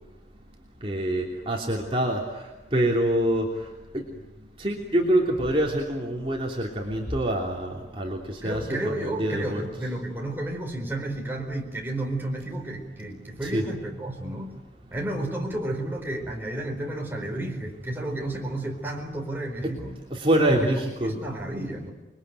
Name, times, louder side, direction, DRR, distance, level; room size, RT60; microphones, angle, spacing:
voice 1, 0.8-2.2 2.7-3.5 3.9-4.0 4.6-9.6 13.4-13.6 20.1-21.1, right 1 dB, 30° right, -2 dB, 3.1 m, -25 dB
voice 2, 8.4-14.5 14.9-20.0 20.5-20.7 21.0-21.9, right 1 dB, 10° right, 0 dB, 4.4 m, -32 dB
28.5 x 22.0 x 9.4 m, 1.1 s
head